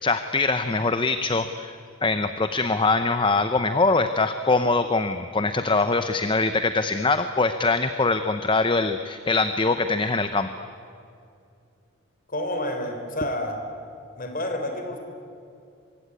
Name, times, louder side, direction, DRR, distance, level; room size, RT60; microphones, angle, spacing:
voice 1, 0.0-10.5, left 3 dB, 25° left, 9 dB, 0.7 m, -23 dB
voice 2, 12.3-13.6 14.2-15.0, left 1 dB, 40° left, 6 dB, 3.6 m, -29 dB
24.0 x 23.5 x 9.7 m, 2.5 s
head